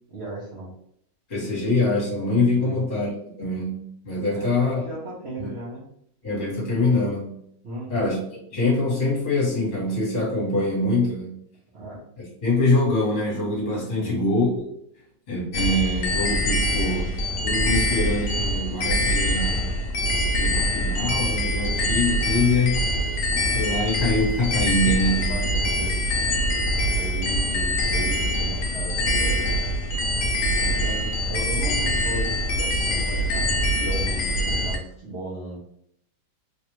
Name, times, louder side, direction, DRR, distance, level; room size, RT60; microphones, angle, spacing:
voice 1, 0.1-0.7 2.6-2.8 4.3-5.8 7.6-8.1 11.7-12.0 14.0-14.3 25.3-26.0 27.0-29.6 30.6-35.6, right 1 dB, 50° right, -7 dB, 0.9 m, -36 dB
voice 2, 1.3-3.1 3.4-4.8 5.4-5.5 6.2-7.3 7.9-8.2 8.5-11.4 12.4-14.5 15.3-17.1 17.4-19.7 20.3-22.8 23.5-25.3, left 2 dB, 35° left, -5 dB, 1.4 m, -24 dB
sound 1, 15.5-34.8, equal, 65° left, 0.9 m, -24 dB
3.2 x 2.4 x 2.9 m, 0.71 s
omnidirectional pair, 1.7 m